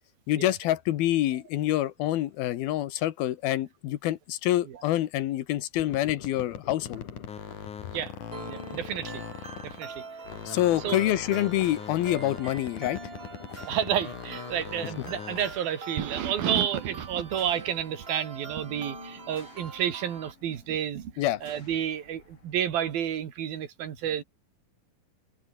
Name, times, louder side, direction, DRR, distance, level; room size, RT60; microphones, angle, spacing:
voice 1, 0.3-7.0 10.5-13.0 21.2-21.4, left 14 dB, 85° left, 3.2 m, -26 dB
sound 1, 5.7-10.0 10.2-15.7, left 8 dB, 60° left, 4.0 m, -41 dB
sound 2, 8.3-23.2, left 3 dB, 35° left, 5.9 m, -53 dB
sound 3, 8.3-20.3, right 4 dB, 40° right, 0.8 m, -44 dB
voice 2, 8.5-9.2 9.6-10.0 10.5-10.6 10.8-11.2 13.6-24.2, right 9 dB, 80° right, 4.1 m, -30 dB
omnidirectional pair, 4.2 m